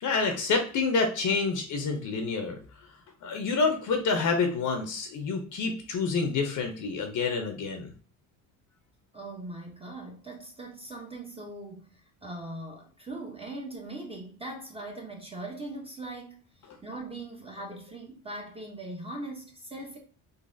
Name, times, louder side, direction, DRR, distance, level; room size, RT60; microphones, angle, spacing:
voice 1, 0.0-2.6 3.2-7.9, left 4 dB, 55° left, 0.7 m, -28 dB
voice 2, 9.1-20.0, right 2 dB, 15° right, 0.7 m, -40 dB
3.9 x 2.7 x 2.6 m
cardioid pair, 105°, 36 cm